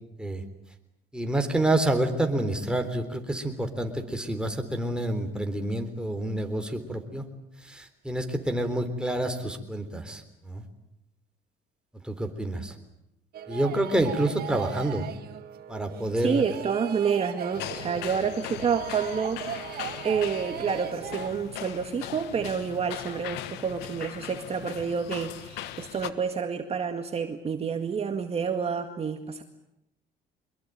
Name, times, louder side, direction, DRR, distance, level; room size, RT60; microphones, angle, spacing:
voice 1, 1.1-7.2 7.6-10.6 12.0-12.7 13.5-15.1 15.7-16.4, right 1 dB, 5° right, 5 dB, 3.7 m, -28 dB
sound 1, 13.3-21.3, right 10 dB, 65° right, 1.9 m, -38 dB
voice 2, 16.2-19.4 20.0-29.4, right 6 dB, 35° right, 6 dB, 2.0 m, -29 dB
sound 2, 17.5-26.1, left 12 dB, 90° left, 1.5 m, -39 dB
24.5 x 22.0 x 9.3 m, 0.84 s
cardioid pair, 110°, 17 cm